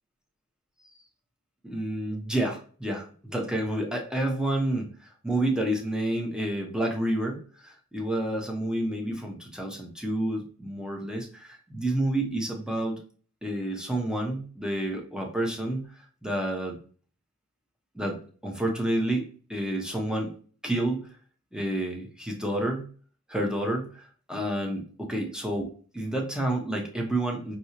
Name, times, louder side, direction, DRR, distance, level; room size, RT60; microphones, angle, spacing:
voice 1, 1.6-13.0 13.4-16.8 17.9-20.3 20.6-21.1 21.5-22.9 23.3-27.6, right 1 dB, ahead, 1 dB, 1.0 m, -29 dB
4.4 x 2.4 x 2.8 m, 0.42 s
wide cardioid pair, 45°, 31 cm